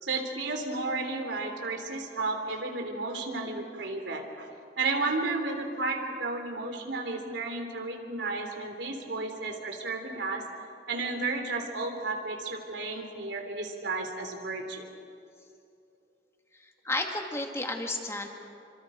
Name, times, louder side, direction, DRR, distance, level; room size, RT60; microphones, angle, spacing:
voice 1, 0.0-4.5 4.8-10.4 10.9-14.9, right 3 dB, 85° right, 4 dB, 3.3 m, -33 dB
voice 2, 16.8-18.3, left 2 dB, 15° left, 2 dB, 2.1 m, -32 dB
28.5 x 26.0 x 5.1 m, 2.6 s
head